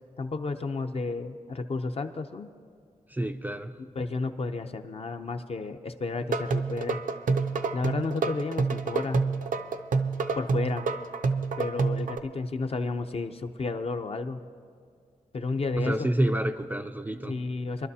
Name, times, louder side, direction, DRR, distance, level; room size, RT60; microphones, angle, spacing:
voice 1, 0.2-2.5 4.0-7.0 7.7-9.3 10.4-10.9 11.6-14.4 15.3-16.1 17.3-17.9, left 3 dB, 45° left, 7 dB, 0.6 m, -32 dB
voice 2, 3.1-3.8 15.8-17.4, right 1 dB, 15° right, 7 dB, 0.4 m, -28 dB
sound 1, 6.2-12.2, right 4 dB, 70° right, 0.6 m, -28 dB
23.5 x 12.0 x 2.8 m, 2.2 s
wide cardioid pair, 125°, 14 cm